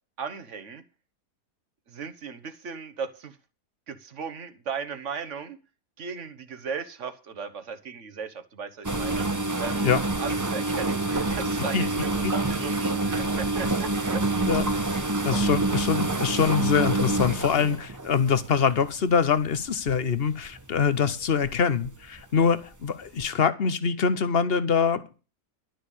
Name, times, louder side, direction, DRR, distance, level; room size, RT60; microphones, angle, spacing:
voice 1, 0.2-0.8 1.9-3.4 3.9-5.6 6.0-9.9 10.2-14.9 15.3-15.6 22.4-22.5, right 6 dB, 50° right, 10 dB, 1.5 m, -37 dB
sound 1, 8.8-19.0 19.7-20.0 20.4-20.6 21.4-21.9 22.2-22.3 23.2-23.3, right 2 dB, 15° right, 0.6 m, -27 dB
voice 2, 15.2-25.0, left 6 dB, 45° left, 14 dB, 0.9 m, -24 dB
11.5 x 6.3 x 8.2 m, 0.34 s
omnidirectional pair, 1.7 m